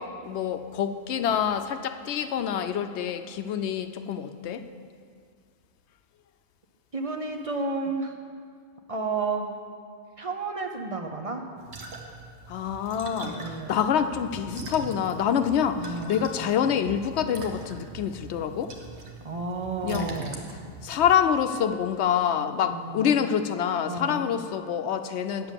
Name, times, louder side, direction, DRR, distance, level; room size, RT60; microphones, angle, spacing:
voice 1, 0.0-4.6 12.5-18.7 19.8-20.1 20.8-25.5, left 8 dB, 85° left, 9 dB, 0.9 m, -26 dB
voice 2, 6.9-8.1 8.9-9.5 10.2-11.4 13.2-13.9 15.8-16.5 19.2-20.5 22.6-23.2 23.9-24.2, right 3 dB, 35° right, 3 dB, 0.7 m, -32 dB
sound 1, 11.6-21.3, right 3 dB, 80° right, 1.3 m, -42 dB
9.2 x 6.9 x 7.4 m, 2.1 s
omnidirectional pair, 1.1 m